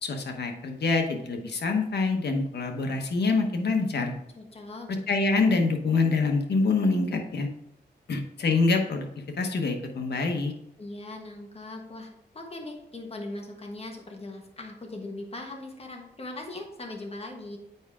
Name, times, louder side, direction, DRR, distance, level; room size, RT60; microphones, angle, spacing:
voice 1, 0.0-4.1 5.1-7.5 8.1-9.1 9.4-10.5, left 3 dB, 75° left, 4 dB, 1.1 m, -25 dB
voice 2, 4.3-4.9 10.8-12.1 12.3-17.6, left 2 dB, 35° left, 2 dB, 1.4 m, -39 dB
8.1 x 4.8 x 3.6 m, 0.80 s
wide cardioid pair, 105°, 17 cm